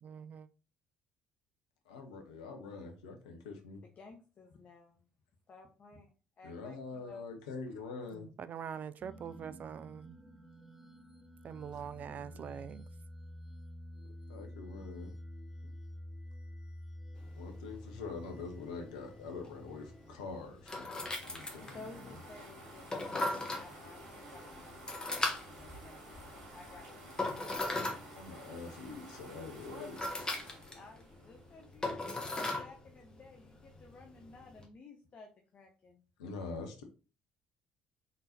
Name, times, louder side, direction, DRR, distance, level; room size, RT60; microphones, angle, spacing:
voice 1, 0.0-0.5 8.1-10.2 11.4-12.8, right 8 dB, 45° right, 0.3 m, -44 dB
voice 2, 1.9-3.8 6.4-8.3 12.1-12.4 14.3-15.1 15.6-15.7 17.4-22.2 28.1-30.0 36.2-36.8, left 4 dB, 75° left, 0.8 m, -45 dB
voice 3, 3.8-5.0 5.5-6.1 6.4-7.3 21.6-27.4 30.7-36.0, left 3 dB, 40° left, 0.8 m, -55 dB
sound 1, 9.0-20.1, equal, 10° right, 0.6 m, -49 dB
sound 2, 17.1-34.6, left 2 dB, 20° left, 1.3 m, -41 dB
sound 3, 21.2-31.6, right 1 dB, 80° right, 1.8 m, -52 dB
4.1 x 3.8 x 2.6 m
figure-of-eight pair, 50°, 4 cm